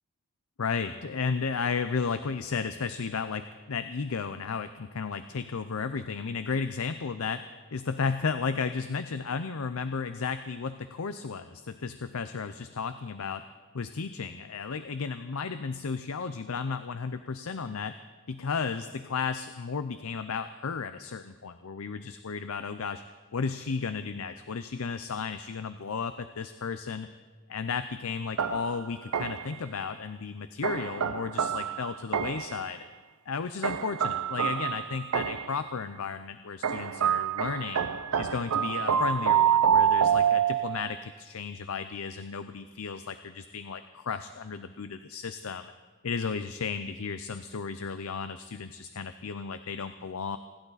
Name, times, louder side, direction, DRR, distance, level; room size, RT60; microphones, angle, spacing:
voice 1, 0.6-13.4 13.7-17.9 18.3-23.0 23.3-27.1 27.5-32.8 33.3-37.9 38.2-45.7 46.0-50.4, left 5 dB, 75° left, 11 dB, 0.6 m, -34 dB
sound 1, 28.4-29.6 30.6-32.6 33.6-35.6 36.6-40.9, right 8 dB, 85° right, 0.6 m, -27 dB
27.5 x 11.5 x 4.1 m, 1.3 s
head